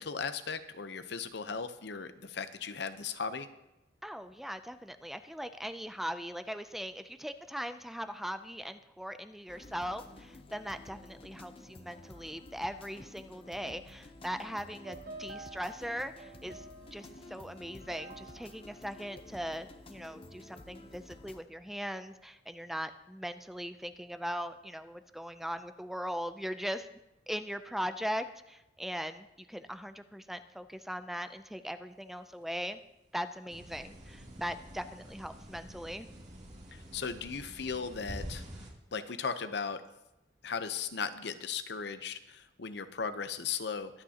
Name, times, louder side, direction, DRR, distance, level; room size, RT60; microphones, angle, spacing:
voice 1, 0.0-3.5 36.7-38.4 38.9-39.8 40.4-44.0, left 5 dB, 70° left, 10 dB, 0.8 m, -37 dB
voice 2, 4.0-16.6 16.9-26.9 27.3-32.8 33.1-36.1, equal, ahead, 10 dB, 0.4 m, -39 dB
sound 1, 9.5-21.4, left 2 dB, 35° left, 0.8 m, -52 dB
sound 2, 14.7-20.0, right 2 dB, 60° right, 1.1 m, -51 dB
sound 3, 33.5-38.7, equal, 40° right, 2.4 m, -47 dB
23.0 x 8.9 x 2.9 m, 0.92 s
head